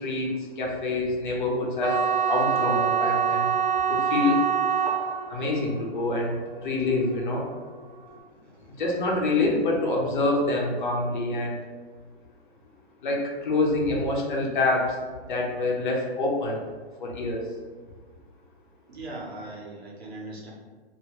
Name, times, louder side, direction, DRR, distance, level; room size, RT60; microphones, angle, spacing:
voice 1, 0.0-2.0 2.3-3.5 3.9-4.4 5.3-7.5 8.7-11.6 13.0-15.0 15.3-16.6 17.0-17.5, left 2 dB, 50° left, -1 dB, 0.8 m, -26 dB
sound 1, 1.8-8.0, right 7 dB, 45° right, 0.4 m, -26 dB
voice 2, 8.4-8.8 18.9-20.5, right 2 dB, 80° right, -3 dB, 1.2 m, -40 dB
2.9 x 2.7 x 3.1 m, 1.4 s
hypercardioid pair, 165°, 31 cm